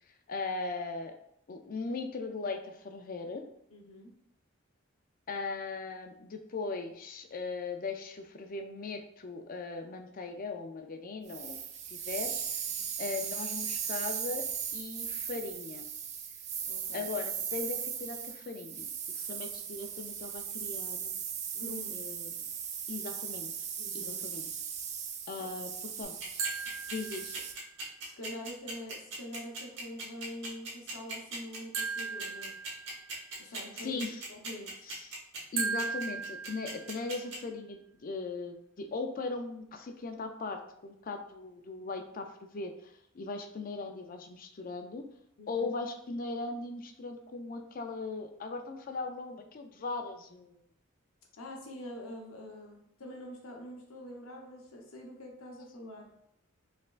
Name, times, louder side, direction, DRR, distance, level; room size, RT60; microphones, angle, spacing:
voice 1, 0.3-1.1 1.5-3.4 5.3-11.6 11.9-12.6 13.0-14.5 14.7-15.9 16.9-18.9 19.2-21.2 21.9-22.4 22.9-23.7 23.9-24.5 25.3-25.7 26.0-26.4 26.9-27.4 33.4-34.2 34.9-35.1 35.5-42.3 42.5-45.0 45.5-50.6, left 3 dB, 40° left, 6 dB, 0.4 m, -39 dB
voice 2, 3.7-4.1 12.7-12.9 16.7-17.1 21.5-22.0 23.8-24.2 28.0-32.5 33.4-34.0 34.3-35.0 45.4-45.7 51.4-56.1, left 1 dB, 85° left, 0 dB, 0.9 m, -45 dB
sound 1, 11.3-27.5, right 8 dB, 35° right, 0.4 m, -38 dB
sound 2, 26.0-37.4, right 3 dB, 60° right, 1.3 m, -40 dB
sound 3, 26.4-27.7 31.7-33.3 35.6-37.3, right 5 dB, 80° right, 0.9 m, -37 dB
4.4 x 3.5 x 2.4 m, 0.73 s
head